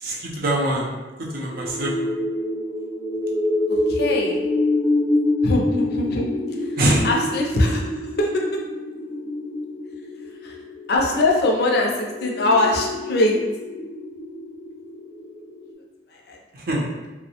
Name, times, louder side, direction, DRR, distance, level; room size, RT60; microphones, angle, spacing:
voice 1, 0.0-0.9 1.3-2.1 6.8-7.1 16.5-16.9, right 1 dB, 55° right, -3 dB, 0.5 m, -23 dB
sound 1, 1.4-15.7, left 1 dB, 15° right, 0.8 m, -27 dB
voice 2, 3.9-4.4 5.4-6.3 7.0-7.8 8.2-8.6 10.4-10.5 10.9-13.3 16.3-16.4, left 2 dB, 60° left, -1 dB, 0.5 m, -21 dB
2.6 x 2.0 x 2.8 m, 1.2 s
head